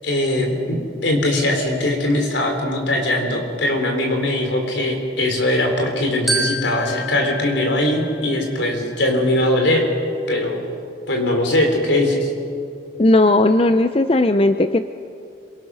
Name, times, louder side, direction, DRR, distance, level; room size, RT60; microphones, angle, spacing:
voice 1, 0.0-0.8 1.0-9.8 10.3-10.6 11.1-12.3, left 1 dB, 70° left, 3 dB, 4.1 m, -20 dB
Glockenspiel, 6.3-8.7, right 1 dB, ahead, 2.3 m, -28 dB
voice 2, 13.0-14.9, left 2 dB, 30° left, 9 dB, 0.5 m, -16 dB
26.5 x 23.5 x 6.4 m, 2.5 s
head